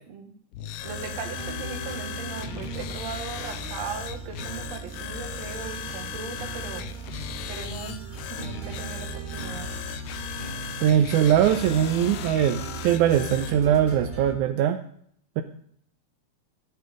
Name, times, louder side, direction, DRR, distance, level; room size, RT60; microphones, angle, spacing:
sound 1, 0.5-13.6, left 11 dB, 85° left, 2.4 m, -37 dB
voice 1, 0.6-6.9 7.5-8.0 8.3-9.7, right 6 dB, 60° right, 4 dB, 2.7 m, -38 dB
sound 2, 0.8-14.3, right 4 dB, 20° right, 1.3 m, -38 dB
voice 2, 10.8-14.8 15.4-15.5, right 10 dB, 80° right, 7 dB, 2.1 m, -21 dB
14.5 x 9.5 x 5.1 m, 0.64 s
omnidirectional pair, 3.6 m